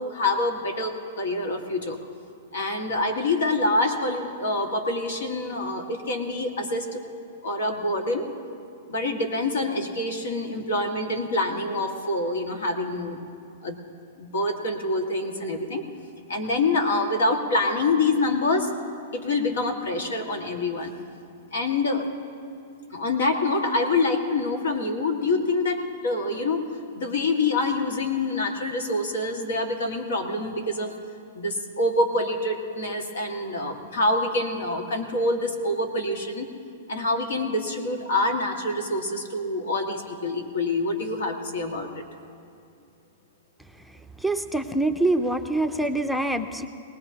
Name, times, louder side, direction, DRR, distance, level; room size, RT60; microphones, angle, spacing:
voice 1, 0.0-2.0 2.5-7.0 7.4-8.3 8.9-13.2 13.6-13.8 14.2-15.8 16.3-18.7 19.1-20.9 21.5-22.0 22.9-26.6 27.0-30.9 31.3-36.5 36.9-42.0, left 2 dB, 90° left, 4 dB, 1.9 m, -26 dB
voice 2, 44.2-46.7, right 2 dB, ahead, 5 dB, 0.5 m, -25 dB
24.0 x 19.0 x 2.9 m, 2.4 s
hypercardioid pair, 150°, 0 cm